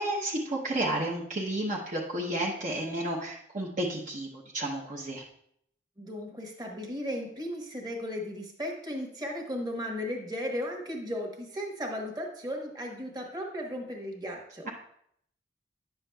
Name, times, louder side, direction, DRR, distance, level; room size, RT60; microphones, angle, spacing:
voice 1, 0.0-5.2, right 1 dB, 45° right, -3 dB, 0.8 m, -32 dB
voice 2, 6.0-14.6, equal, 25° right, 1 dB, 1.2 m, -36 dB
9.9 x 6.9 x 2.3 m, 0.69 s
head